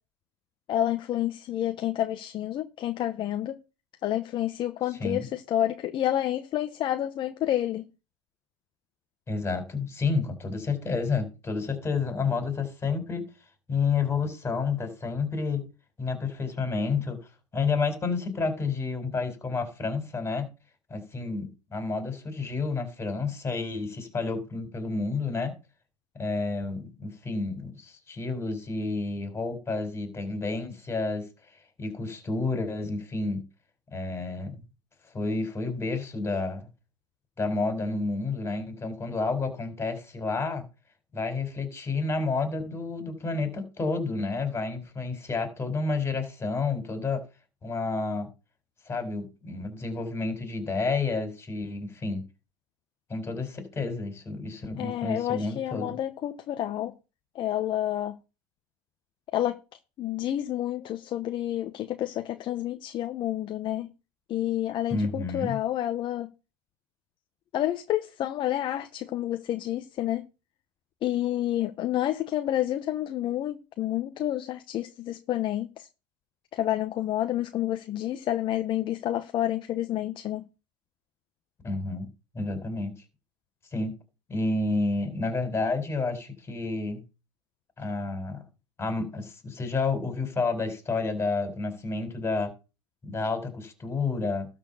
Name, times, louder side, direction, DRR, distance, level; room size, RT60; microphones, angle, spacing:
voice 1, 0.7-3.6 4.0-7.9 54.8-56.9 57.3-58.2 59.3-59.6 60.0-63.9 64.3-66.3 67.5-70.2 71.0-75.9 76.5-80.5, left 12 dB, 40° left, 1.0 m, -29 dB
voice 2, 4.9-5.3 9.3-13.2 13.7-15.6 16.0-17.2 17.5-20.5 20.9-25.5 26.2-31.2 31.8-33.4 33.9-34.6 35.1-36.6 37.4-40.7 41.1-47.2 47.6-48.3 48.9-52.2 53.1-55.9 64.9-65.6 81.6-82.1 82.3-82.9 83.7-83.9 84.3-87.0 87.8-88.4 88.8-92.5 93.0-94.5, left 3 dB, 20° left, 4.4 m, -30 dB
12.5 x 4.4 x 7.0 m
supercardioid pair, 115°, 13 cm